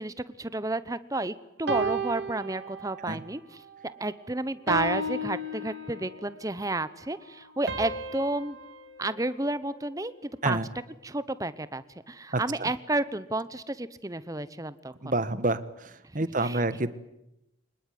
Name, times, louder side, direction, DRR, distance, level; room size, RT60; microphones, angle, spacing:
voice 1, 0.0-3.4 3.8-8.6 9.0-10.6 11.0-14.9 16.4-16.6, right 2 dB, 15° right, 15 dB, 0.9 m, -31 dB
sound 1, 1.7-3.2 3.7-4.0 4.7-6.3 7.7-10.1, right 2 dB, 70° right, 2.7 m, -34 dB
voice 2, 12.3-12.7 15.0-16.9, right 2 dB, 40° right, 14 dB, 1.3 m, -28 dB
25.0 x 20.5 x 9.4 m, 0.88 s
head